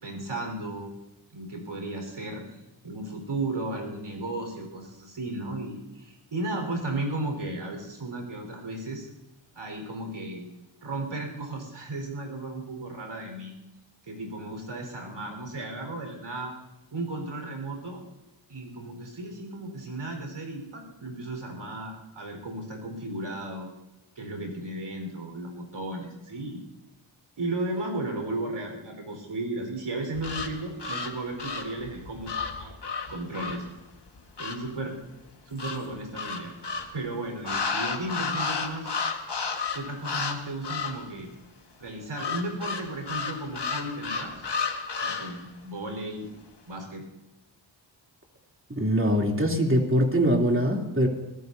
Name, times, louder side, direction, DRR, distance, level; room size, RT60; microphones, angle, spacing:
voice 1, 0.0-0.9 1.3-2.4 2.8-9.1 9.5-10.5 10.8-13.6 14.1-16.5 16.9-18.0 18.5-23.7 24.2-26.6 27.4-32.7 33.1-33.7 34.4-35.0 35.5-36.5 36.9-38.9 39.7-41.3 41.8-44.5 45.0-46.3 46.7-47.0, right 2 dB, 80° right, 2 dB, 4.7 m, -34 dB
sound 1, 30.1-34.7 35.6-37.0 37.4-40.4 40.6-41.1 42.2-45.4, left 5 dB, 55° left, 1.6 m, -32 dB
voice 2, 48.7-51.1, equal, 25° right, 0 dB, 3.1 m, -23 dB
23.5 x 15.5 x 2.8 m, 0.98 s
cardioid pair, 60°, 48 cm